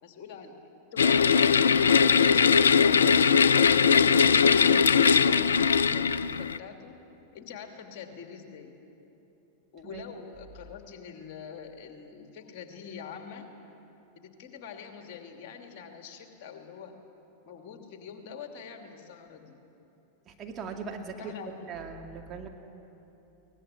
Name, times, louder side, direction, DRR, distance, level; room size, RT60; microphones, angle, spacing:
voice 1, 0.0-0.6 0.9-3.2 3.5-7.0 7.3-8.7 9.7-13.5 14.2-16.9 17.4-19.6 21.2-21.5, left 7 dB, 45° left, 4 dB, 2.8 m, -44 dB
sound 1, 1.0-6.6, left 6 dB, 70° left, 0.5 m, -20 dB
voice 2, 20.3-22.5, right 5 dB, 25° right, 1 dB, 2.3 m, -39 dB
23.0 x 19.5 x 8.5 m, 2.9 s
figure-of-eight pair, 90°, 0 cm